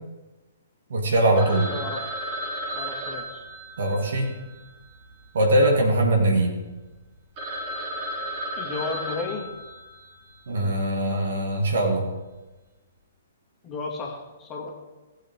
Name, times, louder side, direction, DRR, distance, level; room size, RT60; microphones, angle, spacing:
voice 1, 0.9-1.7 3.8-4.3 5.3-6.5 10.5-12.1, right 1 dB, 60° right, 2 dB, 2.3 m, -21 dB
Telephone, 1.4-5.7 6.0-6.1 6.6-6.7 7.1-7.2 7.4-10.3, equal, 35° right, 3.2 m, -34 dB
voice 2, 1.7-2.0 2.7-3.5 8.6-9.5 13.6-14.7, left 4 dB, 20° left, -1 dB, 2.2 m, -33 dB
18.0 x 7.9 x 3.7 m, 1.2 s
figure-of-eight pair, 120°, 0 cm